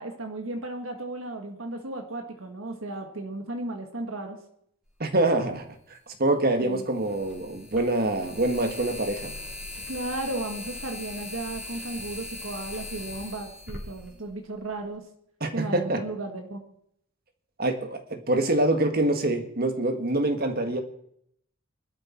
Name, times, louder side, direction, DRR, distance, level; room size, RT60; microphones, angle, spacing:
voice 1, 0.0-4.4 6.6-6.8 9.9-15.0 15.5-16.6, right 2 dB, 65° right, 4 dB, 1.8 m, -35 dB
voice 2, 5.0-5.7 6.2-9.3 15.4-16.1 17.6-20.8, right 2 dB, 45° right, 5 dB, 1.8 m, -25 dB
sound 1, 5.5-5.6 6.9-14.8, left 2 dB, 5° right, 3.7 m, -40 dB
20.5 x 12.5 x 4.5 m, 0.71 s
head